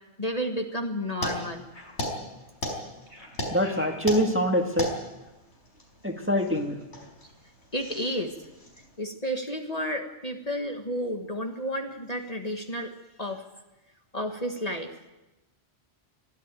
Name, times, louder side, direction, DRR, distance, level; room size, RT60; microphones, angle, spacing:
voice 1, 0.2-1.6 7.7-8.3 9.0-12.9 13.2-13.4 14.1-14.9, equal, 35° left, 4 dB, 1.6 m, -31 dB
sound 1, 1.2-8.9, left 1 dB, 70° left, 5.1 m, -36 dB
voice 2, 3.5-4.9 6.0-6.8, equal, 10° right, 3 dB, 1.8 m, -24 dB
23.0 x 13.5 x 9.1 m, 1.0 s
omnidirectional pair, 1.2 m